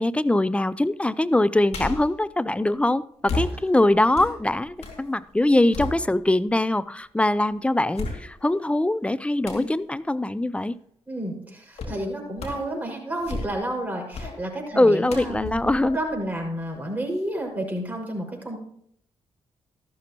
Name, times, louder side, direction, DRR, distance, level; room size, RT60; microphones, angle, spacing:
voice 1, 0.0-10.8 14.8-16.0, left 1 dB, 10° left, 17 dB, 0.5 m, -22 dB
sound 1, 1.7-2.2 3.3-5.0 5.4-6.5 7.0-7.1 7.9-8.6 9.4-9.8 11.8-12.0 12.4-12.7 13.1-13.7 14.1-14.4 15.1-16.8 17.1-17.2, left 3 dB, 60° left, 2.4 m, -34 dB
voice 2, 11.1-15.5 15.9-18.6, right 1 dB, 15° right, -1 dB, 5.5 m, -30 dB
13.5 x 11.5 x 3.0 m, 0.66 s
supercardioid pair, 50°, 12 cm